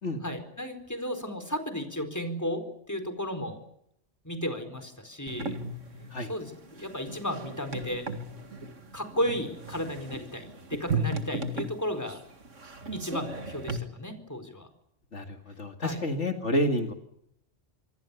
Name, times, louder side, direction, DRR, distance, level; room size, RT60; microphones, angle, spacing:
voice 1, 0.2-3.6 4.2-5.6 6.3-8.1 8.9-12.2 12.9-14.7 15.8-16.0, equal, 15° left, 7 dB, 4.5 m, -34 dB
sound 1, 5.3-13.8, right 3 dB, 85° right, 2.4 m, -36 dB
voice 2, 15.1-16.9, left 1 dB, 70° left, 5 dB, 2.4 m, -29 dB
27.0 x 24.0 x 7.1 m, 0.76 s
omnidirectional pair, 1.2 m